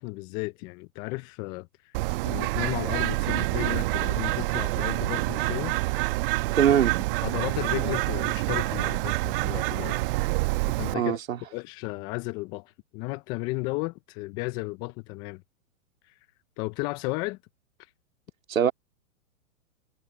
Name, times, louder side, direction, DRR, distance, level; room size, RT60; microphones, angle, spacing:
voice 1, 0.0-1.9 2.2-5.8 7.2-10.0 10.8-11.2 11.5-15.4 16.6-17.4, left 24 dB, 10° left, 0.3 m, -34 dB
Bird, 1.9-10.9, right 22 dB, 40° right, 1.2 m, -27 dB
voice 2, 6.4-7.0 10.9-11.4 18.5-18.7, right 9 dB, 70° right, 2.2 m, -22 dB
figure-of-eight pair, 115°, 42 cm